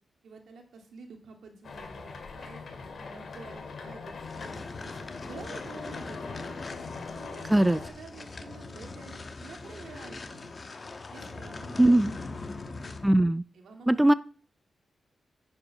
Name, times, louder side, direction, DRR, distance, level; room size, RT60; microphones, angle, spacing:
voice 1, 0.2-2.6 3.1-6.6 7.1-10.6 11.1-12.5 13.5-14.2, right 4 dB, 85° right, 3 dB, 2.4 m, -49 dB
sound 1, 1.6-7.9, left 4 dB, 60° left, 2.2 m, -41 dB
sound 2, 4.2-13.2, left 3 dB, 40° left, 1.2 m, -42 dB
voice 2, 11.8-12.1 13.0-13.4 13.9-14.1, right 1 dB, 10° right, 16 dB, 0.3 m, -20 dB
9.5 x 5.4 x 6.0 m, 0.43 s
cardioid pair, 90°, 0 cm